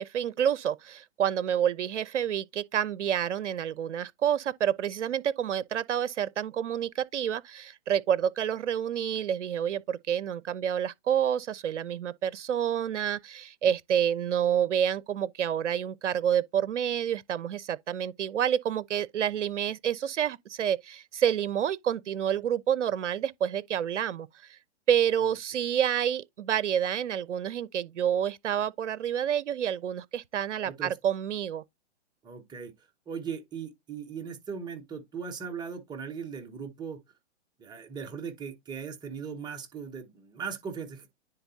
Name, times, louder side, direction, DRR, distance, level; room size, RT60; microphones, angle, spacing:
voice 1, 0.0-24.6 24.9-31.6, right 9 dB, 85° right, 0.5 m, -28 dB
voice 2, 30.6-31.0 32.2-37.0 37.6-41.1, right 6 dB, 10° right, 0.8 m, -39 dB
10.0 x 3.9 x 2.7 m
hypercardioid pair, 130°, 35 cm